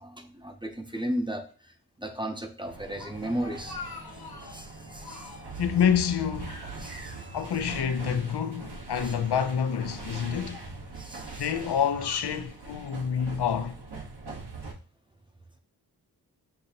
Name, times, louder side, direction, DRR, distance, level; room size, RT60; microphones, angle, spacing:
voice 1, 0.0-1.7 2.0-3.8 4.4-5.3 6.8-7.2 9.0-9.1 11.0-11.5, right 1 dB, 10° right, 0.6 m, -35 dB
sound 1, 2.6-14.7, right 3 dB, 75° right, 1.1 m, -42 dB
Speech, 3.0-4.7 5.0-5.6 6.0-7.1 7.3-7.5 8.3-9.3 10.0-10.4 11.1-12.8, left 4 dB, 60° left, 0.9 m, -46 dB
voice 2, 5.6-6.6 7.3-10.6 11.4-13.8, left 8 dB, 80° left, 0.5 m, -27 dB
6.6 x 2.7 x 2.8 m
wide cardioid pair, 80°, 39 cm